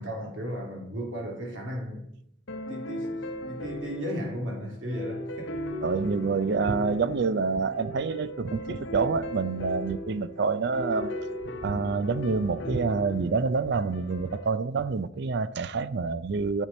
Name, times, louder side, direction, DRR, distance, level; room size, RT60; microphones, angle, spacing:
voice 1, 0.0-2.1 2.7-3.2 3.4-5.6, equal, 75° right, 3.0 m, -35 dB
sound 1, 2.5-14.5, left 1 dB, 70° left, 1.0 m, -37 dB
voice 2, 5.8-11.1 11.6-16.7, right 4 dB, 60° right, 0.4 m, -27 dB
9.8 x 8.3 x 4.2 m
head